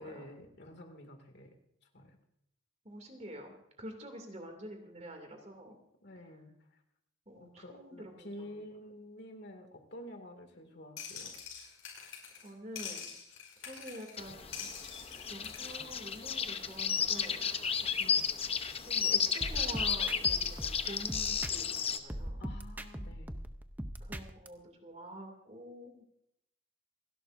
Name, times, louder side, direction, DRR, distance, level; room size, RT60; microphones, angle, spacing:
voice 1, 0.0-1.5 1.9-2.2 6.0-6.8 7.3-11.3 18.0-18.3 22.4-23.4, left 1 dB, 50° left, 5 dB, 2.3 m, -49 dB
voice 2, 2.8-5.8 7.3-8.6 12.3-13.1 13.6-14.7 15.0-17.5 17.8-17.9 18.8-22.4 24.0-26.0, right 1 dB, 30° right, 4 dB, 2.5 m, -48 dB
sound 1, 11.0-12.5 12.8-14.2 14.5-15.8, left 7 dB, 90° left, 5.4 m, -45 dB
sound 2, 14.2-22.0, left 6 dB, 25° left, 0.8 m, -33 dB
sound 3, 19.4-21.8 22.1-24.5, equal, 10° right, 0.6 m, -41 dB
28.0 x 11.5 x 2.6 m, 0.78 s
head